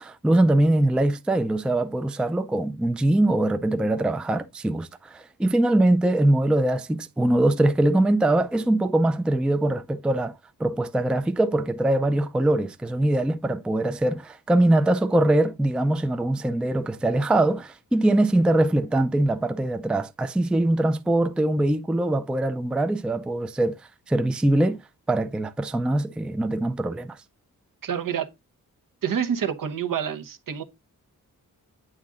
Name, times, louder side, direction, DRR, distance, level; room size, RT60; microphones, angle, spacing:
voice 1, 0.0-23.7 24.1-24.8 25.1-27.2, right 1 dB, 5° right, 0.3 m, -22 dB
voice 2, 27.8-28.3 29.0-30.6, right 8 dB, 70° right, 1.0 m, -27 dB
8.9 x 3.7 x 3.7 m
wide cardioid pair, 165°, 34 cm